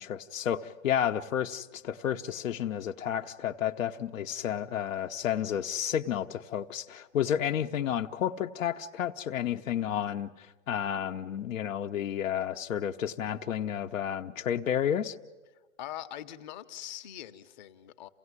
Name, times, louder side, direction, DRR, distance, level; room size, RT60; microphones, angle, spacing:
voice 1, 0.0-15.2, left 9 dB, 80° left, 1.0 m, -31 dB
voice 2, 15.8-18.1, left 11 dB, 35° left, 0.9 m, -42 dB
28.5 x 16.5 x 9.7 m
hypercardioid pair, 160°, 39 cm